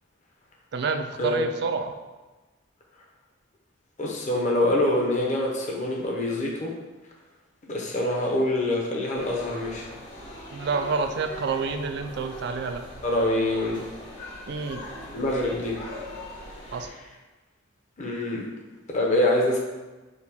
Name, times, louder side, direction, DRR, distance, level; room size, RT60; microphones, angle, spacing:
voice 1, 0.7-1.9 10.5-12.8 14.5-14.8 16.7-16.9, right 4 dB, 55° right, 6 dB, 0.3 m, -28 dB
voice 2, 4.0-6.7 7.7-9.9 13.0-13.8 15.1-15.8 16.8-17.0 18.0-18.5 18.9-19.6, left 1 dB, 35° left, -1 dB, 0.7 m, -25 dB
sound 1, 9.1-16.9, left 1 dB, 65° left, 1.5 m, -41 dB
4.3 x 2.2 x 4.1 m, 1.2 s
head